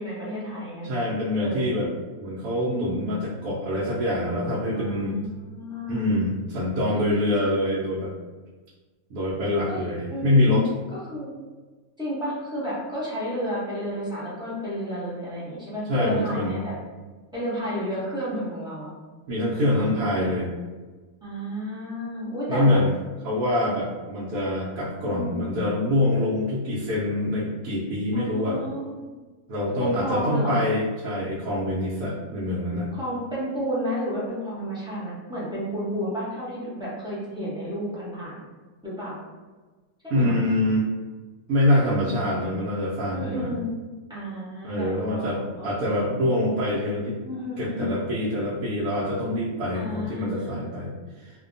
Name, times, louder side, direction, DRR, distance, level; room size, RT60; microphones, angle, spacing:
voice 1, 0.0-0.9 1.4-1.8 4.7-6.1 6.8-7.3 9.7-9.8 10.1-10.6 10.9-11.3 12.0-16.7 17.3-18.9 19.8-20.3 21.2-22.8 25.0-25.5 28.1-29.0 29.8-30.6 32.9-38.3 38.8-39.2 40.0-40.4 43.1-43.7 44.1-45.3 45.6-46.0 47.2-47.9 49.7-50.6, equal, 5° right, -10 dB, 0.3 m, -32 dB
voice 2, 0.8-1.9 2.2-5.2 5.9-8.1 9.1-10.7 15.9-16.6 19.3-20.5 22.5-22.9 23.2-28.6 29.5-32.9 40.1-40.9 41.5-43.5 44.6-47.2 47.6-50.9 51.2-51.3, left 1 dB, 75° right, -7 dB, 1.0 m, -25 dB
2.6 x 2.1 x 2.5 m, 1.3 s
omnidirectional pair, 1.6 m